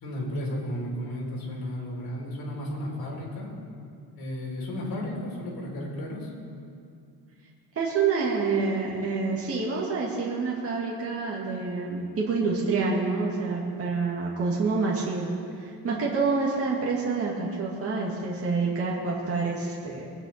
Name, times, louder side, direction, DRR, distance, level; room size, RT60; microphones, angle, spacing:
voice 1, 0.0-3.5 4.1-6.3, left 1 dB, 65° left, -3 dB, 4.2 m, -33 dB
voice 2, 7.8-15.3 15.6-20.1, right 4 dB, 35° right, -4 dB, 2.0 m, -27 dB
22.5 x 9.7 x 4.3 m, 2.4 s
cardioid pair, 150°, 39 cm